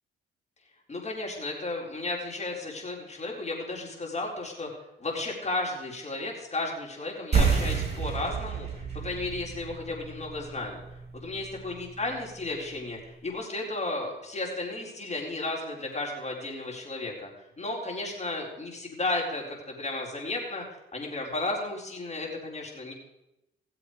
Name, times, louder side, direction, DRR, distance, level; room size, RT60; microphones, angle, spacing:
voice 1, 0.9-4.7 5.0-10.8 11.1-17.3 17.6-20.6 20.9-22.9, left 2 dB, 35° left, -1 dB, 4.3 m, -34 dB
sound 1, 7.3-12.4, right 5 dB, 35° right, 5.6 m, -30 dB
17.0 x 7.7 x 5.0 m, 0.87 s
cardioid pair, 90°, 20 cm